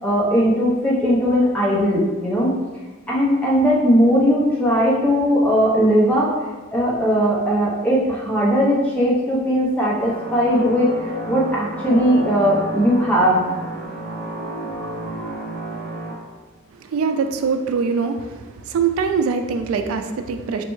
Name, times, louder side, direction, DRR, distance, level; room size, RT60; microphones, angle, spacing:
voice 1, 0.0-2.5 3.1-6.3 6.7-13.4 14.7-15.3, equal, 5° left, -6 dB, 0.8 m, -18 dB
sound 1, 10.0-16.1, right 2 dB, 50° right, 0.6 m, -31 dB
voice 2, 16.9-18.3 18.7-20.6, right 5 dB, 85° right, 7 dB, 0.3 m, -22 dB
4.1 x 3.2 x 3.1 m, 1.3 s
head